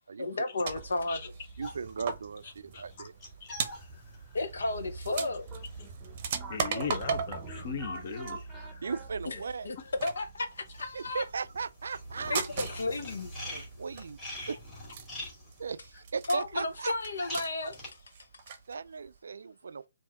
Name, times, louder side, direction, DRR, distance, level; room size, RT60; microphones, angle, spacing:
voice 1, 0.2-1.2 4.3-5.5 9.2-9.8 10.0-11.2 12.3-13.3 16.3-17.8, left 2 dB, 80° left, 0.9 m, -33 dB
sound 1, 0.7-18.7 19.1-19.2, right 6 dB, 35° right, 0.7 m, -40 dB
sound 2, 1.6-9.1 9.4-17.9, left 1 dB, 15° left, 1.9 m, -46 dB
voice 2, 1.6-3.1 8.8-9.7 10.9-12.4 13.5-14.2 14.5-14.6 15.6-16.9 18.7-19.8, right 5 dB, 75° right, 0.3 m, -37 dB
sound 3, 4.6-9.7, right 2 dB, 5° right, 0.9 m, -44 dB
voice 3, 6.5-8.8, left 6 dB, 40° left, 1.0 m, -38 dB
4.4 x 2.7 x 3.5 m
hypercardioid pair, 165°, 0 cm